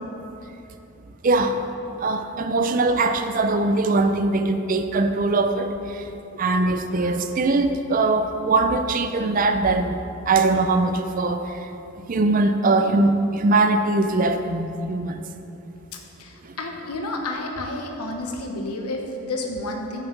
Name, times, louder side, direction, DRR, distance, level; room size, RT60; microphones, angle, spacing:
voice 1, 1.2-1.7 2.0-6.0 6.4-11.7 12.1-15.2 16.4-16.6, right 3 dB, 35° right, 7 dB, 0.4 m, -21 dB
voice 2, 6.0-6.4 15.9-20.1, left 2 dB, 90° left, 2 dB, 1.1 m, -31 dB
9.1 x 7.2 x 4.6 m, 2.9 s
head